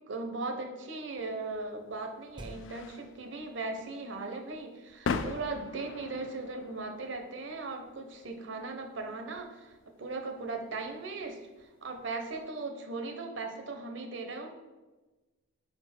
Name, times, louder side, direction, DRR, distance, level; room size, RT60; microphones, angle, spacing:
voice 1, 0.1-14.6, right 3 dB, 65° right, 4 dB, 0.8 m, -38 dB
sound 1, 1.1-12.4, left 5 dB, 65° left, 0.4 m, -43 dB
sound 2, 2.4-3.0 5.1-6.1, right 1 dB, 25° right, 0.6 m, -46 dB
4.7 x 4.4 x 5.9 m, 1.2 s
head